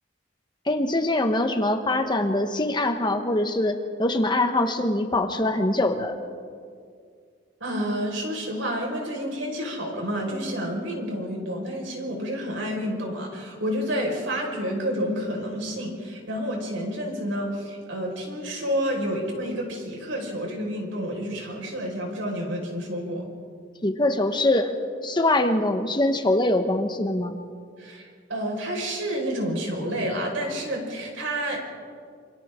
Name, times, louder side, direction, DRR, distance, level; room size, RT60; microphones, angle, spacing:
voice 1, 0.7-6.2 23.8-24.7 25.0-27.4, left 1 dB, 25° left, 6 dB, 1.2 m, -23 dB
voice 2, 7.6-23.3 27.8-31.6, equal, 75° right, 0 dB, 5.2 m, -29 dB
27.5 x 25.5 x 3.8 m, 2.2 s
head